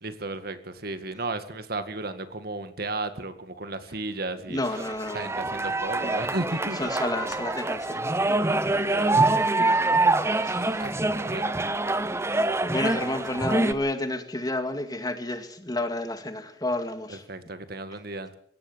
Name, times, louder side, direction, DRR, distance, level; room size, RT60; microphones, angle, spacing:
voice 1, 0.0-4.6 5.1-6.8 8.8-9.6 10.8-10.9 11.2-11.4 17.1-18.3, right 2 dB, 60° right, 2.1 m, -34 dB
voice 2, 4.5-5.3 6.0-6.2 6.7-8.0 10.4-11.0 12.3-17.2, left 2 dB, 20° left, 2.2 m, -31 dB
sound 1, 4.6-13.7, right 2 dB, 15° right, 1.0 m, -25 dB
23.0 x 17.0 x 7.0 m
head